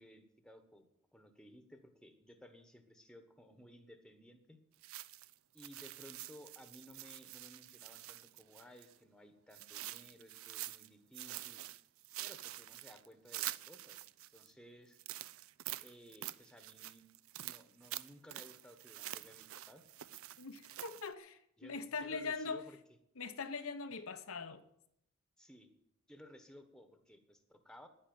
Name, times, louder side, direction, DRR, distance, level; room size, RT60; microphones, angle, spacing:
voice 1, 0.0-4.6 5.5-11.6 12.2-14.0 14.3-15.0 15.8-17.0 17.4-19.9 21.6-22.8 25.4-25.7 26.1-27.9, equal, 5° left, 1.2 m, -58 dB
sound 1, 4.8-9.0 9.5-10.9 11.1-14.5 14.9-21.1, right 15 dB, 80° right, 0.5 m, -47 dB
voice 2, 20.4-22.6 23.2-24.6, left 4 dB, 80° left, 1.0 m, -42 dB
9.9 x 9.8 x 9.4 m
head